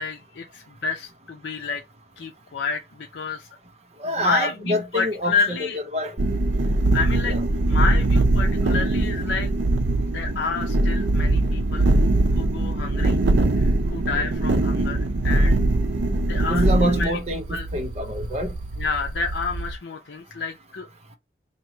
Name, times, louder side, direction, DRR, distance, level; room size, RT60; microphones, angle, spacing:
voice 1, 0.0-1.8 2.2-3.5 4.2-5.8 6.9-9.6 10.1-11.9 12.3-13.2 13.5-15.6 16.2-17.2 17.5-17.7 18.8-20.9, left 4 dB, 85° left, 0.5 m, -29 dB
voice 2, 4.0-6.2 7.3-7.4 14.1-14.2 16.5-17.5 17.7-18.5, equal, 35° right, 0.7 m, -26 dB
sound 1, 6.2-19.8, right 2 dB, 85° right, 0.6 m, -22 dB
3.0 x 2.8 x 4.3 m
head